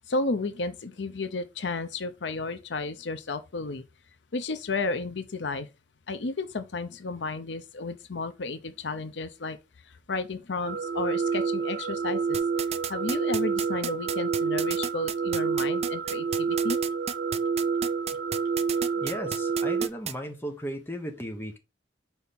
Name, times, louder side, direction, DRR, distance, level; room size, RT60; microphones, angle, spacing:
voice 1, 0.1-3.8 4.3-5.7 6.1-9.6 9.9-12.4 12.9-16.8 19.0-19.1, left 3 dB, 85° left, 0.7 m, -32 dB
sound 1, 10.6-19.9, right 5 dB, 90° right, 0.6 m, -28 dB
sound 2, 12.3-20.1, right 8 dB, 35° right, 0.5 m, -32 dB
voice 2, 19.0-21.6, equal, 15° left, 1.2 m, -36 dB
5.6 x 4.6 x 4.1 m
head